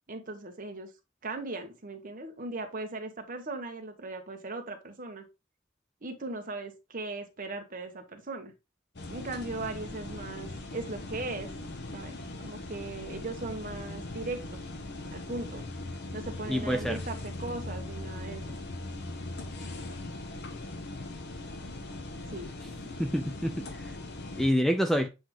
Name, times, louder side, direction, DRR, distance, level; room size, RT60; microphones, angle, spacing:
voice 1, 0.1-0.9 1.2-5.2 6.0-8.5 9.1-11.5 11.9-14.6 15.1-15.6 16.1-18.6 22.3-22.5, right 2 dB, 40° right, 1.2 m, -38 dB
sound 1, 9.0-24.5, left 2 dB, 50° left, 0.9 m, -40 dB
voice 2, 16.5-17.0 23.0-23.9 24.4-25.1, equal, ahead, 0.3 m, -27 dB
7.7 x 3.5 x 3.6 m
head